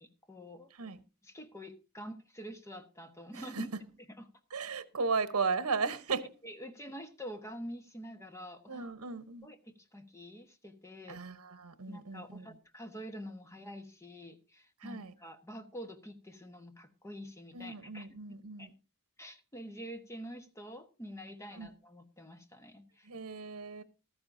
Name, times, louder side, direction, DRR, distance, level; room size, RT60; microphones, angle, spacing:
voice 1, 0.0-0.7 1.2-3.7 4.1-4.3 6.4-8.8 9.4-11.2 11.9-18.1 18.6-18.7 19.2-23.1, equal, 15° left, 1.1 m, -46 dB
voice 2, 3.3-3.6 4.5-6.2 8.7-9.5 11.1-12.5 14.8-15.1 17.5-18.7 21.6-21.7 23.1-23.8, right 4 dB, 85° right, 0.9 m, -36 dB
15.0 x 13.0 x 2.6 m
head